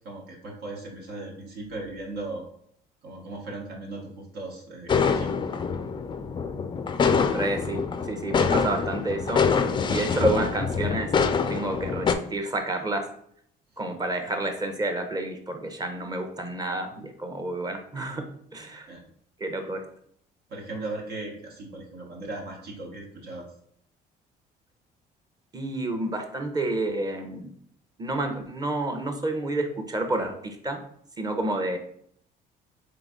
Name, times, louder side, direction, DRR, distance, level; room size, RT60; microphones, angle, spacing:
voice 1, 0.0-2.5 3.0-5.4 13.9-14.0 18.6-19.1 20.5-23.5, right 2 dB, 80° right, -1 dB, 1.2 m, -38 dB
sound 1, 4.9-12.1, left 5 dB, 30° left, 0.4 m, -25 dB
voice 2, 7.3-9.4 9.9-11.1 11.5-13.1 13.8-18.2 18.5-18.9 19.4-19.8 25.5-27.5 28.0-30.8 31.2-31.8, right 2 dB, 25° right, 6 dB, 0.7 m, -29 dB
3.9 x 3.2 x 3.6 m, 0.65 s
cardioid pair, 110°, 17 cm